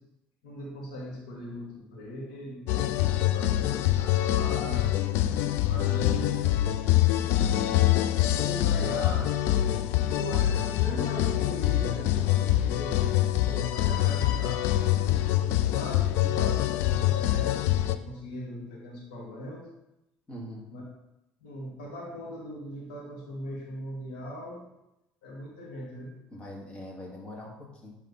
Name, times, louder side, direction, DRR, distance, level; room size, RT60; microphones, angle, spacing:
voice 1, 0.4-2.7 3.0-4.9 5.7-6.3 7.2-9.3 10.1-19.7 20.7-20.8 21.4-24.7 25.2-26.2, left 1 dB, 90° left, -4 dB, 2.3 m, -40 dB
sound 1, 2.7-18.0, left 13 dB, 70° left, 0.4 m, -25 dB
voice 2, 20.3-20.7 26.3-27.9, left 1 dB, 25° left, -3 dB, 2.3 m, -42 dB
11.0 x 3.7 x 4.2 m, 0.90 s
supercardioid pair, 95°, 4 cm